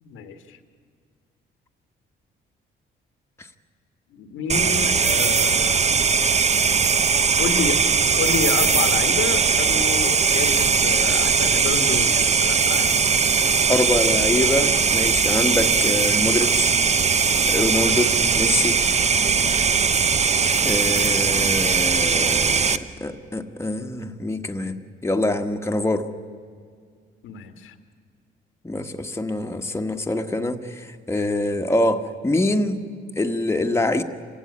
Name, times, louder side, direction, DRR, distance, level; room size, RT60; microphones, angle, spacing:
voice 1, 0.0-0.6 4.1-5.8 7.4-13.0 17.9-18.2 19.4-19.5 27.2-27.7, left 6 dB, 85° left, 8 dB, 1.7 m, -29 dB
sound 1, 4.5-22.8, right 5 dB, 35° right, 0.9 m, -20 dB
voice 2, 13.7-16.8 17.5-18.1 18.4-18.8 20.6-24.8 25.0-26.1 28.6-32.8 33.2-34.0, left 2 dB, 15° left, 4 dB, 1.3 m, -24 dB
26.5 x 16.5 x 9.6 m, 2.1 s
cardioid pair, 90°, 20 cm